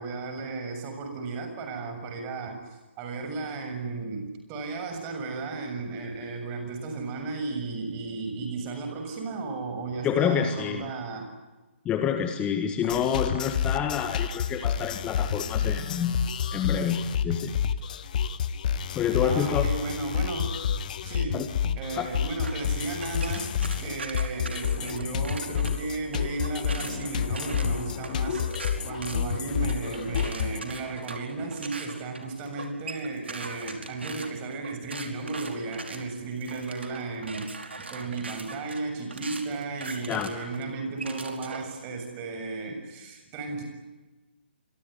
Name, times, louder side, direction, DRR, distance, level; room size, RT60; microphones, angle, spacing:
voice 1, 0.0-11.3 19.2-20.6 21.0-21.5 21.7-28.4 28.8-37.5 37.9-43.6, right 3 dB, 25° right, 5 dB, 7.0 m, -34 dB
voice 2, 10.0-10.8 11.9-16.2 16.5-17.5 19.0-19.7 21.3-21.5 22.0-22.1 40.1-40.3, left 8 dB, 15° left, 8 dB, 1.7 m, -27 dB
sound 1, 12.8-30.6, left 8 dB, 45° left, 1.5 m, -29 dB
sound 2, 22.4-25.7 26.1-41.7, right 3 dB, 70° right, 5.0 m, -41 dB
27.5 x 23.5 x 9.2 m, 1.1 s
figure-of-eight pair, 135°, 6 cm